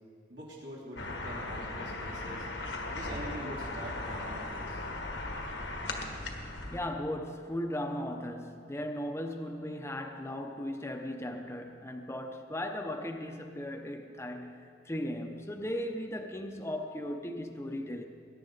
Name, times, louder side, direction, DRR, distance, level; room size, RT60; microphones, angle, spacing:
voice 1, 0.3-2.5 2.9-4.8, right 1 dB, 75° right, -6 dB, 3.3 m, -44 dB
sound 1, 1.0-6.8, left 2 dB, 80° left, 1.5 m, -38 dB
voice 2, 6.7-18.1, left 1 dB, 15° left, 4 dB, 0.7 m, -37 dB
21.0 x 10.5 x 4.0 m, 2.5 s
head